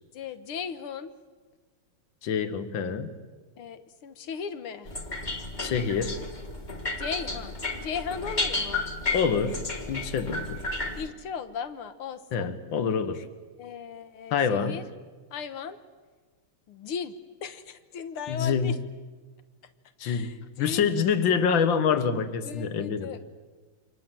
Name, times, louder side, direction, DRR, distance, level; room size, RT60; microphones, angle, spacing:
voice 1, 0.1-1.1 3.6-4.9 7.0-7.6 7.8-8.9 11.0-12.5 13.6-14.8 15.3-15.8 16.7-17.2 17.4-18.8 20.0-21.0 22.5-23.2, left 6 dB, 85° left, 10 dB, 2.1 m, -37 dB
voice 2, 2.2-3.1 5.6-6.2 9.1-10.7 12.3-13.2 14.3-14.8 18.3-18.7 20.0-23.1, left 6 dB, 65° left, 11 dB, 2.1 m, -26 dB
sound 1, 4.9-11.1, left 2 dB, 20° left, 1.8 m, -32 dB
29.0 x 25.5 x 7.7 m, 1.4 s
omnidirectional pair, 2.4 m